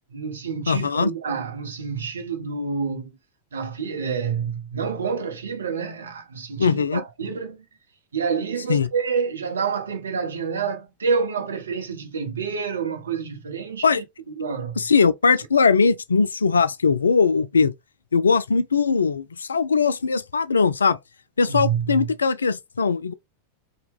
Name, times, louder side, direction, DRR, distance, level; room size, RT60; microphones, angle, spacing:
voice 1, 0.1-3.2 3.5-7.6 8.1-14.0 14.4-14.8 21.5-22.1, right 6 dB, 70° right, 0.8 m, -28 dB
voice 2, 0.7-1.1 6.6-7.0 8.7-8.9 13.8-14.0 14.8-17.7 18.1-21.0 21.4-23.1, left 5 dB, 75° left, 0.3 m, -20 dB
2.9 x 2.2 x 3.4 m
figure-of-eight pair, 90°, 0 cm